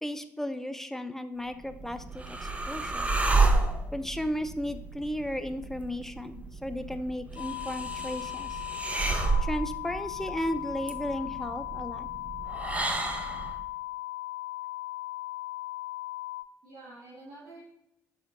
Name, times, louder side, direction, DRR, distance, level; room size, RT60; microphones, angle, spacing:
voice 1, 0.0-3.2 3.9-8.6 9.4-12.1, equal, 5° left, 10 dB, 0.6 m, -35 dB
sound 1, 1.5-13.6, right 3 dB, 15° right, 0.9 m, -31 dB
sound 2, 7.4-16.4, left 18 dB, 70° left, 0.4 m, -38 dB
voice 2, 16.6-17.7, right 2 dB, 65° right, -7 dB, 1.9 m, -49 dB
11.0 x 5.0 x 2.7 m, 0.84 s
figure-of-eight pair, 45°, 8 cm